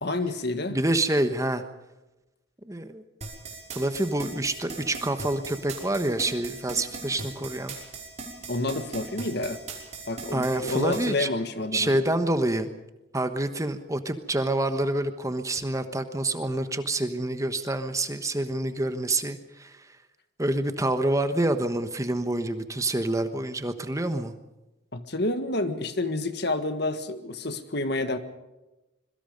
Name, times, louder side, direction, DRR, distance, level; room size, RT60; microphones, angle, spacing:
voice 1, 0.0-0.8 8.5-9.6 10.1-11.9 24.9-28.2, left 2 dB, 55° left, 9 dB, 1.8 m, -29 dB
voice 2, 0.7-1.6 2.7-3.0 3.7-7.7 10.3-11.3 11.7-12.7 13.1-19.9 20.4-24.3, right 1 dB, 15° right, 9 dB, 1.2 m, -27 dB
sound 1, 3.2-11.1, right 3 dB, 35° right, 5.3 m, -38 dB
26.0 x 23.0 x 5.3 m, 1.0 s
head